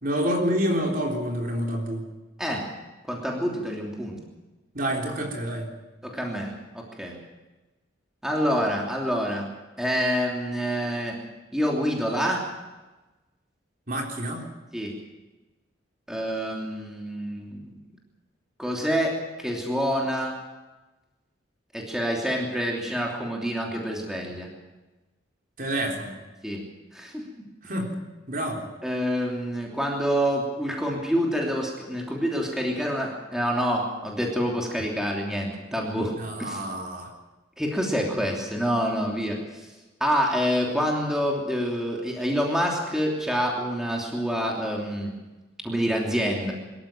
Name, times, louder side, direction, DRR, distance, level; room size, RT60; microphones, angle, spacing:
voice 1, 0.0-2.1 4.7-5.7 13.9-14.5 25.6-26.2 27.6-27.9 28.3-28.7 36.2-37.1, equal, 45° right, 1 dB, 3.6 m, -28 dB
voice 2, 3.1-4.2 6.0-7.2 8.2-9.5 9.8-11.2 11.5-12.5 14.7-15.0 16.1-17.7 18.6-20.4 21.7-24.5 26.4-26.6 26.9-27.5 28.8-36.1 36.4-36.6 37.6-39.4 40.0-45.1 45.6-46.5, equal, 5° right, -1 dB, 3.0 m, -27 dB
23.5 x 14.0 x 9.0 m, 1.1 s
head